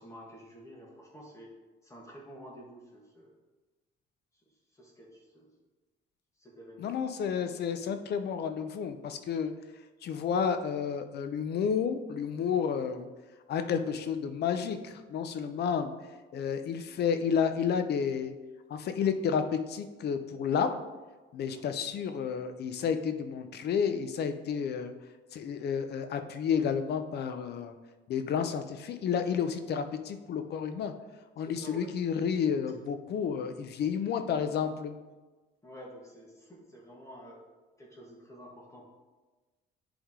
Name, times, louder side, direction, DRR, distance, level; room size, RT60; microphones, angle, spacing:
voice 1, 0.0-1.5 1.8-3.3 4.7-5.5 6.4-6.9 21.5-21.8 31.4-31.9 35.6-37.4 37.8-38.9, equal, 15° left, -2 dB, 1.5 m, -50 dB
voice 2, 6.8-9.5 10.0-13.1 13.5-15.9 16.3-18.3 18.7-20.8 21.3-24.9 25.3-27.7 28.1-30.9 31.4-34.9, left 7 dB, 50° left, 9 dB, 0.6 m, -31 dB
10.0 x 3.6 x 3.6 m, 1.2 s
cardioid pair, 125°, 21 cm